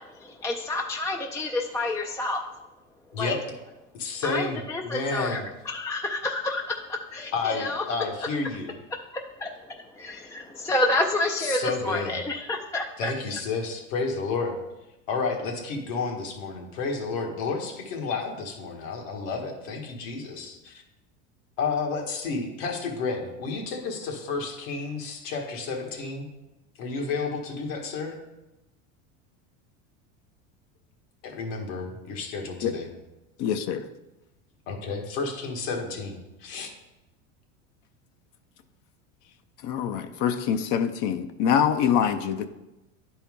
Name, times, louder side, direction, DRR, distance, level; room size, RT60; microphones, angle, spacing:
voice 1, 0.0-2.4 3.1-3.3 4.2-7.9 9.4-13.1, left 2 dB, 10° left, 3 dB, 0.4 m, -29 dB
voice 2, 3.9-5.4 7.3-8.7 11.4-12.2 13.0-14.6 15.1-20.8 21.6-26.3 26.8-28.2 31.2-32.9 34.7-36.7, left 4 dB, 70° left, 2 dB, 1.7 m, -31 dB
voice 3, 33.4-33.9 39.6-42.5, left 8 dB, 50° left, 9 dB, 0.7 m, -25 dB
10.5 x 4.4 x 3.7 m, 0.97 s
supercardioid pair, 105°, 39 cm